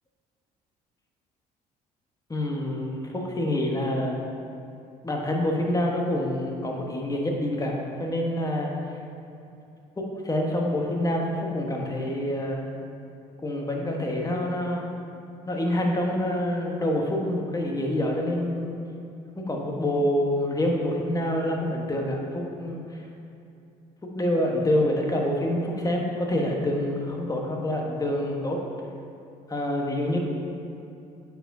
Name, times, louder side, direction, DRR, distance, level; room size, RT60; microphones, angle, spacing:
voice 1, 2.3-4.2 5.0-8.7 10.0-12.7 13.4-14.9 15.5-18.8 19.4-22.8 24.1-28.6 29.5-30.2, left 1 dB, 20° left, 0 dB, 1.2 m, -26 dB
8.6 x 4.7 x 2.7 m, 2.7 s
hypercardioid pair, 65°, 18 cm